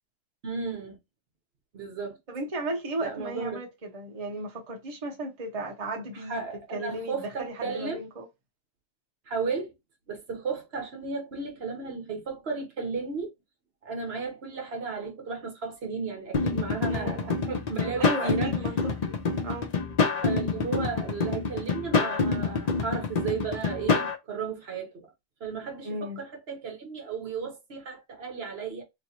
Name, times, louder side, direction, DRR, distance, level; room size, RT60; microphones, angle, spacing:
voice 1, 0.4-1.0 1.7-2.2 3.0-3.6 6.1-8.0 9.3-9.7 10.1-13.3 13.8-18.5 20.2-25.1 25.4-28.8, right 5 dB, 55° right, 1.1 m, -34 dB
voice 2, 2.3-6.4 6.7-8.3 16.9-17.4 18.0-18.8 19.0-19.7 25.8-26.2, right 2 dB, 35° right, 0.8 m, -35 dB
sound 1, 16.3-24.2, left 4 dB, 45° left, 0.5 m, -27 dB
3.1 x 3.0 x 2.8 m
omnidirectional pair, 1.3 m